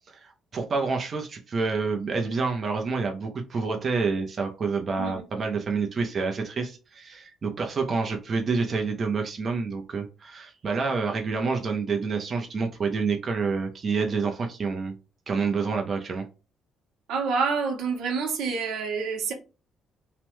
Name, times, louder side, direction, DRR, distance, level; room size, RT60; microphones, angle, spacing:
voice 1, 0.1-14.9 15.3-16.3, right 4 dB, 35° right, 0.6 m, -28 dB
voice 2, 17.1-19.3, right 5 dB, 85° right, 0.9 m, -27 dB
2.9 x 2.1 x 3.0 m
cardioid pair, 140°, 0 cm